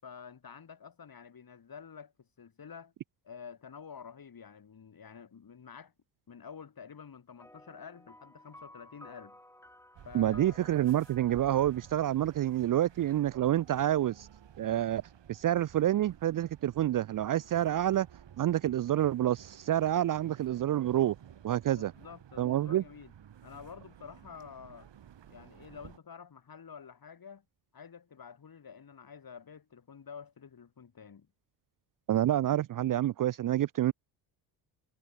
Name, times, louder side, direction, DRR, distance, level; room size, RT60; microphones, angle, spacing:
voice 1, 0.0-2.9 3.2-5.9 6.3-9.4 10.0-10.6 21.7-23.1 23.4-24.9 25.3-27.4 27.7-31.3, left 6 dB, 45° left, 6.3 m, -49 dB
sound 1, 7.4-13.2, left 1 dB, 5° left, 4.8 m, -56 dB
sound 2, 9.9-26.0, right 9 dB, 60° right, 7.1 m, -54 dB
voice 2, 10.1-14.1 14.6-15.0 15.4-18.1 18.4-21.1 21.4-21.9 22.4-22.8 32.1-33.9, right 12 dB, 45° right, 0.5 m, -28 dB
cardioid pair, 70°, 48 cm